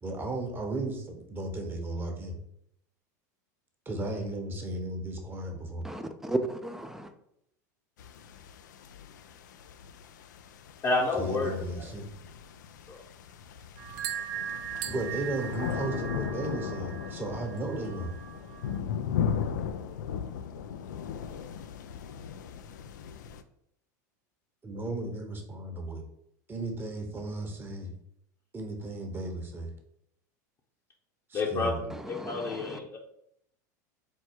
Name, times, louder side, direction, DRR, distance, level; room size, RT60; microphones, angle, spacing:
voice 1, 0.0-2.3 3.8-5.9 11.2-12.1 14.9-18.1 24.6-26.0 26.5-27.9 28.5-29.7 31.3-31.8, right 2 dB, 20° right, 1.0 m, -35 dB
voice 2, 5.8-7.1 32.2-32.8, right 1 dB, 5° right, 0.5 m, -34 dB
sound 1, 8.0-23.4, left 8 dB, 80° left, 0.4 m, -37 dB
voice 3, 10.8-11.5 12.9-13.0 31.3-31.9 32.2-33.0, left 3 dB, 30° left, 0.8 m, -29 dB
sound 2, 13.8-18.8, right 9 dB, 60° right, 0.5 m, -39 dB
4.6 x 2.2 x 4.4 m
hypercardioid pair, 100°, 10 cm